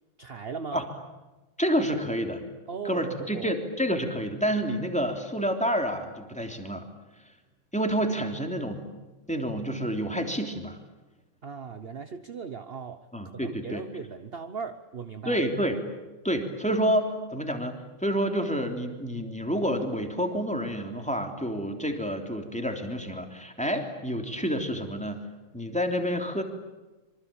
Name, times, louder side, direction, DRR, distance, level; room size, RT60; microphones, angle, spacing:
voice 1, 0.2-0.9 2.7-3.5 11.4-13.1 13.3-15.4, right 5 dB, 40° right, 10 dB, 0.9 m, -38 dB
voice 2, 1.6-2.4 2.8-6.9 7.7-8.9 9.3-10.8 13.1-13.8 15.2-15.8 16.2-25.2 25.5-26.4, equal, 5° left, 4 dB, 3.2 m, -29 dB
26.0 x 25.0 x 8.8 m, 1.1 s
omnidirectional pair, 2.3 m